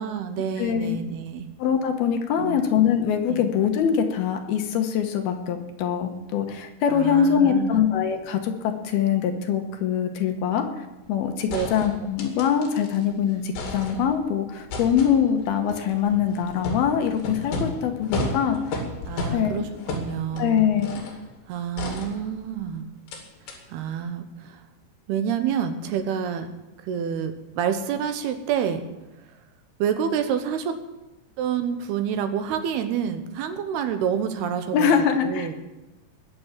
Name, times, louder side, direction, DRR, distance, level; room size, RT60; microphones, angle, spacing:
voice 1, 0.0-1.5 2.4-2.6 3.3-3.4 6.9-7.8 11.5-11.7 19.1-20.7 21.5-22.9 23.7-24.6 25.1-26.5 26.8-28.8 29.8-30.8 31.4-34.9 35.2-35.5, right 8 dB, 75° right, 8 dB, 2.9 m, -28 dB
voice 2, 0.6-1.0 1.6-18.8 19.3-19.6 20.4-21.0 34.7-35.5, left 8 dB, 70° left, 6 dB, 2.8 m, -23 dB
sound 1, 11.0-11.1 11.5-13.1 13.3-14.3 14.7-21.2 21.8-22.6 23.1-23.2 23.5-23.6, left 2 dB, 90° left, 4.6 m, -33 dB
20.5 x 7.0 x 7.3 m, 1.0 s
omnidirectional pair, 4.9 m